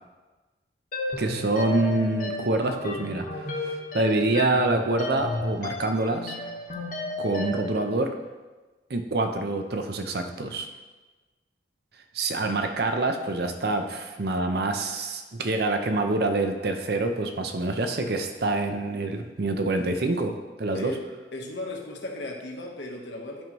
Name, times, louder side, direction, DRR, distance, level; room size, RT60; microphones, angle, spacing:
sound 1, 0.9-7.8, left 2 dB, 50° left, 1.2 m, -33 dB
voice 1, 1.2-3.4 3.9-6.3 7.2-8.1 8.9-10.7 12.1-20.3 20.6-20.9, right 2 dB, 60° right, 6 dB, 0.7 m, -26 dB
voice 2, 21.3-23.4, left 2 dB, 80° left, 0 dB, 1.2 m, -36 dB
10.5 x 5.3 x 3.1 m, 1.2 s
head